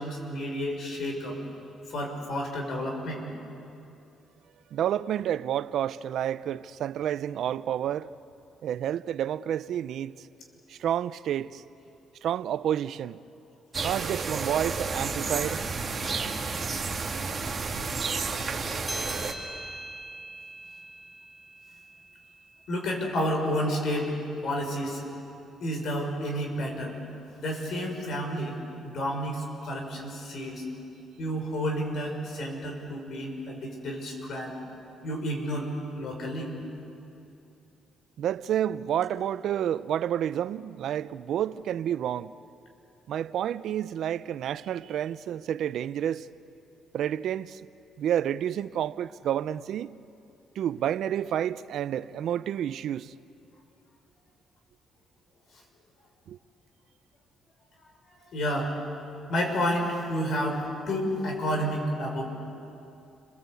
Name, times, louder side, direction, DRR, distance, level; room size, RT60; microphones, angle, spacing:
voice 1, 0.0-1.4 1.9-3.2 13.8-13.9 22.7-24.1 24.4-25.0 25.6-27.0 27.4-30.6 31.2-34.6 35.0-36.5 58.3-58.7 59.3-62.2, equal, 65° left, 6.2 m, -30 dB
voice 2, 4.7-8.1 8.6-10.1 10.7-11.6 12.2-13.2 13.8-15.6 38.2-42.3 43.1-46.3 46.9-47.6 48.0-49.9 50.6-53.1 56.3-56.4, right 10 dB, 75° right, 0.6 m, -29 dB
sound 1, 13.7-19.3, right 4 dB, 35° right, 2.5 m, -31 dB
sound 2, 18.9-23.7, right 1 dB, 5° left, 5.3 m, -42 dB
30.0 x 23.5 x 8.3 m
cardioid pair, 90°, 0 cm